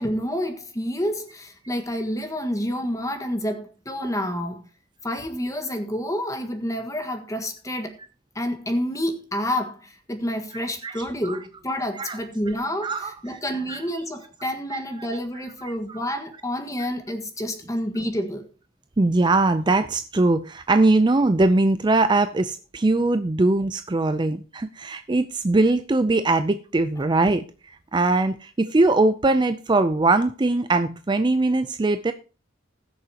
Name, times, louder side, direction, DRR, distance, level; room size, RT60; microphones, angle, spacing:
voice 1, 0.0-4.6 5.0-7.9 8.3-18.5, equal, 15° left, 1.5 m, -29 dB
voice 2, 10.5-11.4 12.0-12.2 12.8-13.4 13.7-13.8 14.7-14.8 15.6-16.0 19.0-27.4 27.9-32.1, right 2 dB, 20° right, 0.4 m, -21 dB
20.0 x 6.7 x 2.9 m
head